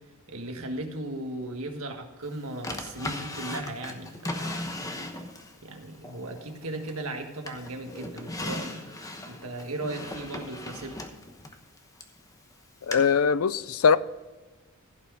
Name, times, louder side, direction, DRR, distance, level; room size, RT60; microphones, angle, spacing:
voice 1, 0.3-4.6 5.6-8.9 9.3-10.9, right 2 dB, 70° right, 1.6 m, -37 dB
Drawer open or close, 2.6-5.6 6.0-7.1 7.5-12.2 12.9-13.0, left 1 dB, 15° left, 1.0 m, -37 dB
voice 2, 12.9-14.0, left 6 dB, 70° left, 0.5 m, -21 dB
15.5 x 5.9 x 4.9 m
head